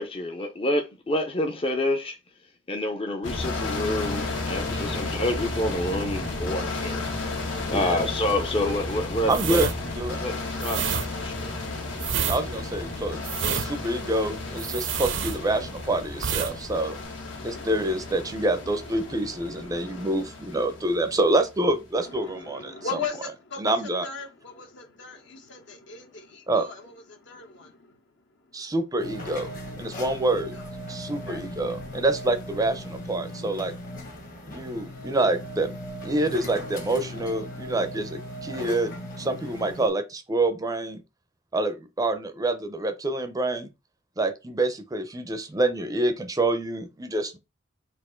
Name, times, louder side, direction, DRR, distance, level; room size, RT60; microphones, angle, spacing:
voice 1, 0.0-2.2 2.7-7.0 7.7-9.6 10.2-10.8 11.2-11.5, left 1 dB, 30° left, 0.5 m, -28 dB
sound 1, 3.2-21.9, left 2 dB, 80° left, 1.6 m, -33 dB
voice 2, 7.7-8.0 8.3-8.4 9.3-10.2 12.3-17.0 17.4-22.7 23.6-24.0 26.5-26.7 28.5-30.6 30.9-33.7 34.5-35.8 36.0-41.0 41.5-43.7 44.2-47.4, right 2 dB, 20° right, 0.5 m, -27 dB
sound 2, 9.3-15.8 16.1-16.5 16.8-17.0, right 7 dB, 70° right, 0.6 m, -29 dB
voice 3, 17.3-20.1 22.0-28.7 29.8-30.1 30.5-32.0, left 5 dB, 65° left, 1.0 m, -40 dB
sound 3, 29.0-39.9, equal, 45° left, 1.3 m, -38 dB
4.3 x 2.5 x 4.3 m
head